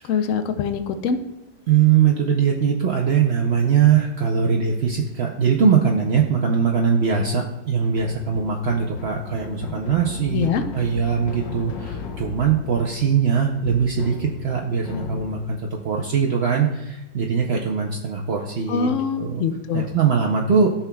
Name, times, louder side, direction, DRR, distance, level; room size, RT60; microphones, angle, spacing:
voice 1, 0.1-1.2 10.3-10.6 18.7-19.9, left 6 dB, 65° left, 8 dB, 0.8 m, -24 dB
voice 2, 1.7-10.5 10.7-18.9 19.2-19.4 19.7-20.7, right 6 dB, 75° right, 0 dB, 0.5 m, -21 dB
sound 1, 7.9-15.7, left 5 dB, 80° left, 1.6 m, -36 dB
13.5 x 5.8 x 2.3 m, 0.94 s
omnidirectional pair, 1.9 m